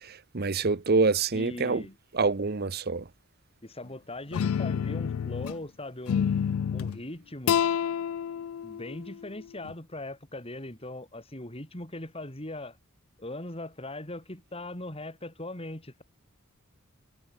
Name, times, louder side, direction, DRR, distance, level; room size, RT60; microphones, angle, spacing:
voice 1, 0.3-1.8 2.1-3.0, right 4 dB, 45° right, 0.9 m, -25 dB
voice 2, 1.3-2.0 3.6-6.4 6.7-7.6 8.6-12.8 13.2-16.0, left 1 dB, 25° left, 4.1 m, -40 dB
sound 1, 4.3-5.6 6.1-7.0 7.5-9.7, left 8 dB, 75° left, 0.3 m, -28 dB
head